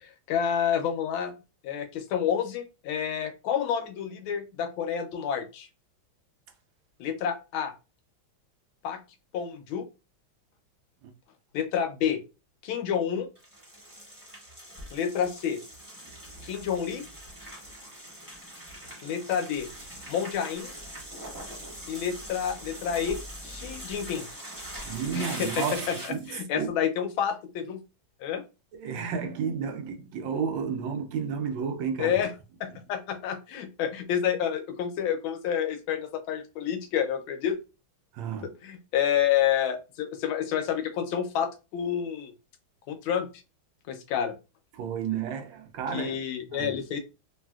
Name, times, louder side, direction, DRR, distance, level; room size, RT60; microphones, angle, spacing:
voice 1, 0.0-1.3 1.6-5.7 7.0-7.7 8.8-9.0 9.3-9.8 11.5-12.2 12.6-13.3 14.9-15.6 16.4-17.1 19.0-19.7 20.1-20.7 21.9-23.2 23.4-24.3 25.1-26.0 26.3-27.8 28.2-28.4 32.0-32.3 32.6-37.6 38.6-42.3 42.9-43.3 43.9-44.3 45.9-47.0, left 8 dB, 85° left, 1.4 m, -29 dB
sound 1, 13.4-26.4, equal, 15° right, 0.9 m, -42 dB
voice 2, 24.8-26.7 28.7-32.2 38.1-38.5 44.7-46.2 46.5-46.8, right 6 dB, 75° right, 1.2 m, -32 dB
3.1 x 2.7 x 2.3 m
omnidirectional pair, 2.2 m